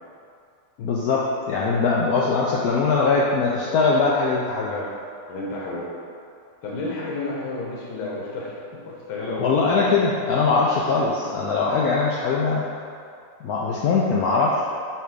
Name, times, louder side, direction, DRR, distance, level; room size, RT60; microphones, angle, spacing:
voice 1, 0.8-4.7 9.4-12.7 13.4-14.6, left 4 dB, 85° left, -4 dB, 0.8 m, -21 dB
voice 2, 5.3-5.9 6.6-8.6 8.8-9.7 11.2-11.3, left 2 dB, 60° left, -5 dB, 1.4 m, -31 dB
5.8 x 3.3 x 5.0 m, 2.4 s
omnidirectional pair, 2.2 m